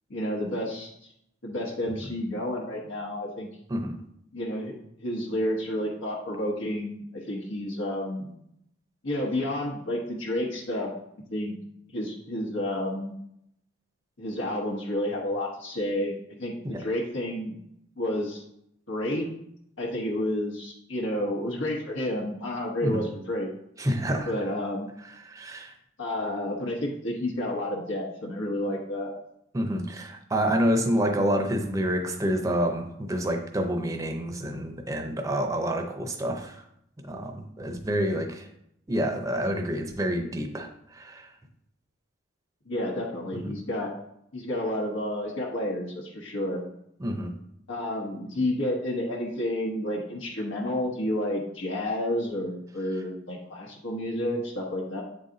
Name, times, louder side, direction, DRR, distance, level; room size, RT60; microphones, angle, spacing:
voice 1, 0.1-0.9 1.4-3.5 4.3-4.7 5.0-8.3 9.0-10.9 11.3-11.6 11.9-13.1 14.2-17.6 18.0-18.4 18.9-19.3 19.8-23.5 24.2-24.9 26.0-29.1 42.7-43.9 44.3-46.6 47.7-55.0, left 1 dB, 75° left, -2 dB, 1.0 m, -30 dB
voice 2, 23.8-24.3 25.2-25.7 29.5-36.6 37.0-38.5 38.9-41.3 43.4-43.5 47.0-47.3, equal, 15° right, 4 dB, 0.6 m, -28 dB
7.9 x 4.0 x 3.8 m, 0.75 s
head